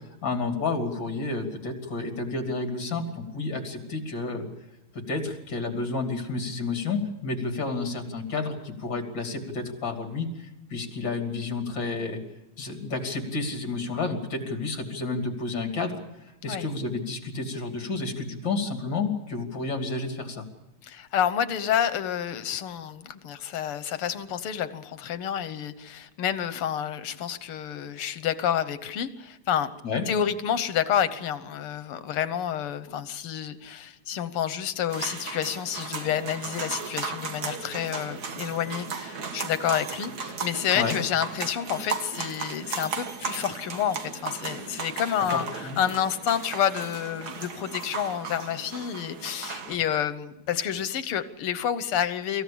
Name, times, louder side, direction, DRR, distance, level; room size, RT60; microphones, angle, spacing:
voice 1, 0.0-4.5 4.9-12.2 12.6-16.0 16.4-20.5 29.8-30.1 40.7-41.0 45.3-45.8, left 3 dB, 60° left, 4 dB, 3.5 m, -30 dB
voice 2, 20.8-29.7 30.1-52.4, left 9 dB, 90° left, 12 dB, 2.0 m, -29 dB
sound 1, 34.9-49.8, right 5 dB, 50° right, 1.9 m, -36 dB
25.0 x 15.0 x 8.6 m, 0.94 s
omnidirectional pair, 2.4 m